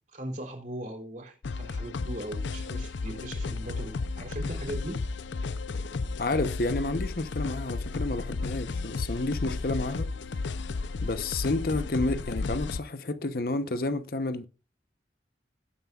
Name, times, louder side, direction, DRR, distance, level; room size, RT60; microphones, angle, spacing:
voice 1, 0.1-5.0, right 1 dB, 45° right, 3.5 m, -39 dB
sound 1, 1.4-12.8, left 3 dB, 85° left, 0.6 m, -33 dB
voice 2, 6.2-10.1 11.0-14.4, left 2 dB, 55° left, 0.8 m, -30 dB
17.5 x 9.5 x 2.4 m
head